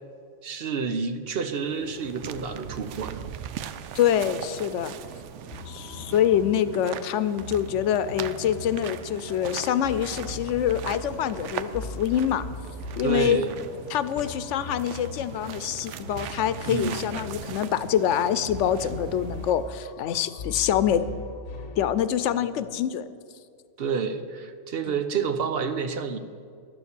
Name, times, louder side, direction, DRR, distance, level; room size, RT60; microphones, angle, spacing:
voice 1, 0.4-3.2 13.0-13.5 16.7-17.0 23.8-26.2, right 6 dB, 60° right, 9 dB, 0.9 m, -29 dB
sound 1, 1.5-19.8, right 9 dB, 90° right, 0.9 m, -40 dB
voice 2, 3.9-4.9 5.7-12.5 13.0-13.4 13.9-21.0 21.8-23.1, left 10 dB, 90° left, 14 dB, 0.9 m, -25 dB
sound 2, 5.5-22.8, left 3 dB, 65° left, 1.3 m, -41 dB
11.0 x 7.1 x 8.2 m, 2.3 s
omnidirectional pair, 1.2 m